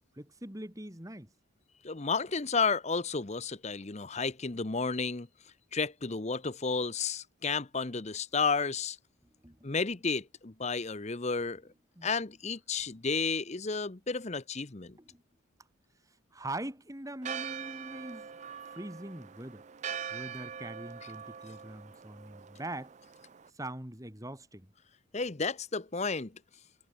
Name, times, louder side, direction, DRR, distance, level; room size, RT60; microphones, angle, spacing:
voice 1, 0.1-1.3 9.2-9.7 12.0-12.1 15.0-15.2 16.3-18.3 18.6-19.6 20.1-22.9 23.5-24.7, right 1 dB, 15° right, 2.7 m, -42 dB
voice 2, 1.8-5.3 5.7-9.0 9.6-11.6 12.0-15.0 25.1-26.3, left 4 dB, 30° left, 0.9 m, -32 dB
Church bell, 17.2-23.5, right 7 dB, 35° right, 0.4 m, -43 dB
head